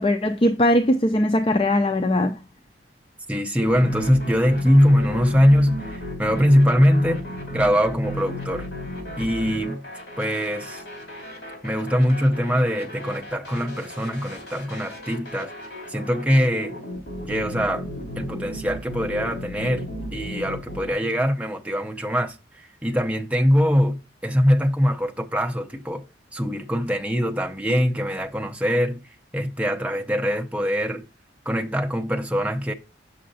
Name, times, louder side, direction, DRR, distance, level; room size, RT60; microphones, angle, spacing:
voice 1, 0.0-2.3, left 1 dB, 30° left, 0.5 m, -20 dB
voice 2, 3.3-7.2 7.5-8.7 9.2-9.8 10.2-10.8 11.6-15.5 15.9-16.8 17.3-17.9 18.2-19.9 20.1-26.0 26.3-29.0 29.3-31.0 31.5-32.7, equal, 5° right, 0.7 m, -22 dB
sound 1, 3.6-20.9, left 1 dB, 60° left, 3.0 m, -35 dB
7.5 x 6.5 x 2.7 m
head